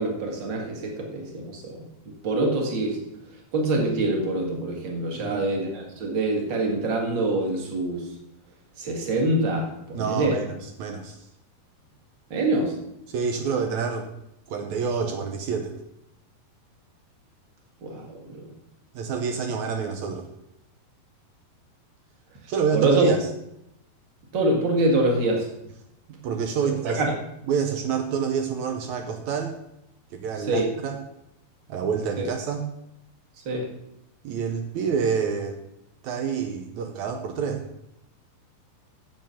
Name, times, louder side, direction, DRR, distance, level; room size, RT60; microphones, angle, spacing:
voice 1, 0.0-1.9 2.2-3.0 3.5-8.1 8.8-10.4 12.3-12.8 17.8-18.4 22.7-23.1 24.3-25.5 26.9-27.1 30.5-30.7 32.2-32.3 33.5-33.7, right 2 dB, 40° right, 1 dB, 1.8 m, -25 dB
voice 2, 9.9-11.2 13.1-14.1 14.5-15.7 18.9-20.3 22.5-23.3 26.1-27.0 27.5-29.6 30.1-31.0 31.7-32.7 34.2-35.6 36.0-37.6, right 6 dB, 90° right, 5 dB, 1.6 m, -27 dB
10.5 x 7.7 x 5.7 m, 0.83 s
omnidirectional pair, 4.5 m